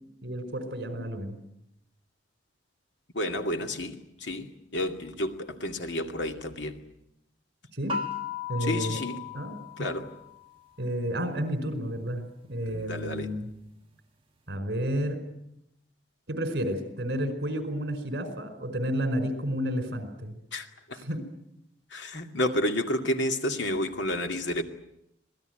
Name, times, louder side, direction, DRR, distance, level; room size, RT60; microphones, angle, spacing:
voice 1, 0.2-1.4 7.7-8.0 8.5-9.0 9.3-9.9 10.8-12.2 12.5-13.5 14.5-15.2 16.3-20.3 21.0-21.2, equal, 60° right, 8 dB, 4.8 m, -31 dB
voice 2, 3.1-6.8 8.6-9.2 9.8-10.1 12.7-13.3 20.5-21.0 21.9-24.6, left 1 dB, 70° left, 5 dB, 2.4 m, -30 dB
sound 1, 7.9-10.6, left 6 dB, 30° right, 1.5 m, -36 dB
26.5 x 19.0 x 9.3 m, 0.79 s
head